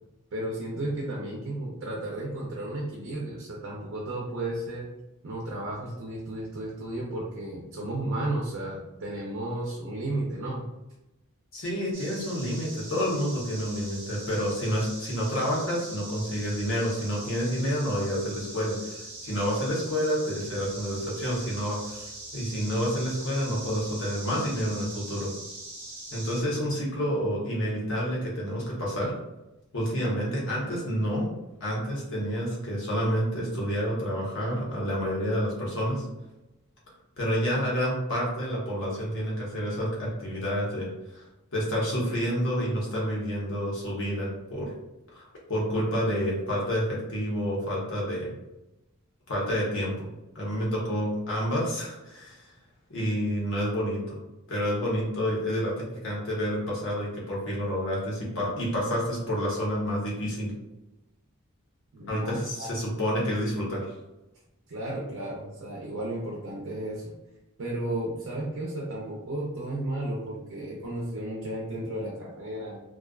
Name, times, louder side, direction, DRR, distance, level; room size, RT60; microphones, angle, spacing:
voice 1, 0.3-4.9 5.2-10.6 61.9-62.7 64.7-67.1 67.6-72.8, right 1 dB, 65° right, -3 dB, 0.5 m, -33 dB
voice 2, 11.5-25.3 26.1-29.1 29.7-31.3 31.6-36.0 37.2-40.9 41.1-41.2 41.5-44.7 45.1-48.3 49.3-50.1 50.3-52.5 52.9-54.2 54.5-60.5 62.1-63.8, equal, 60° left, -4 dB, 0.9 m, -29 dB
sound 1, 11.9-26.4, right 2 dB, 10° right, 0.8 m, -42 dB
2.4 x 2.2 x 2.3 m, 0.98 s
head